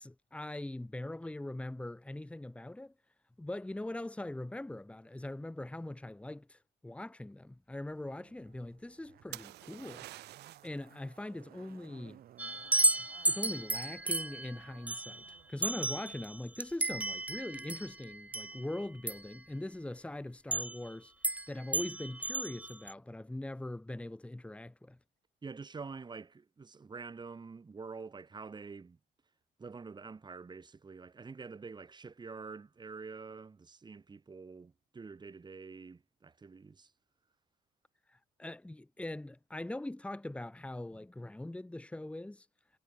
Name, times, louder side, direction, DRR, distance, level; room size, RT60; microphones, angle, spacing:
voice 1, 0.0-2.9 3.4-10.1 10.6-12.2 13.0-21.1 21.5-25.0 38.1-42.5, left 1 dB, 5° left, 1.8 m, -42 dB
Zipper (clothing), 7.9-15.5 15.8-15.9, right 12 dB, 60° right, 4.7 m, -59 dB
sound 1, 9.3-10.8 14.5-14.9, right 16 dB, 80° right, 4.4 m, -48 dB
sound 2, 12.4-19.3 20.5-20.9 21.2-21.5 21.7-22.9, right 2 dB, 10° right, 0.4 m, -33 dB
voice 2, 25.4-29.0 29.6-36.9, right 4 dB, 25° right, 7.1 m, -47 dB
cardioid pair, 110°, 17 cm